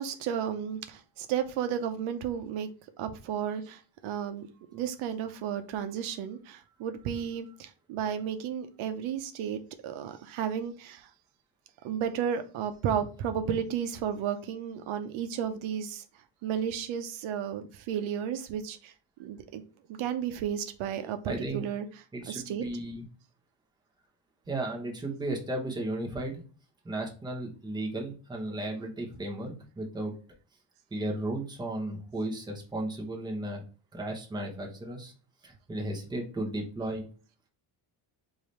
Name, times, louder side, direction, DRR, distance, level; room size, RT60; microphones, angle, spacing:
voice 1, 0.0-2.7 3.0-4.5 4.7-11.1 11.8-16.0 16.4-18.9 19.2-19.6 19.9-21.9 22.3-22.6, right 8 dB, 80° right, 0.7 m, -33 dB
voice 2, 21.2-21.6 22.1-23.1 24.5-26.4 26.8-30.1 30.9-33.6 33.9-35.1 35.4-37.0, right 1 dB, 10° right, 0.8 m, -34 dB
4.9 x 2.7 x 3.0 m
cardioid pair, 175°, 47 cm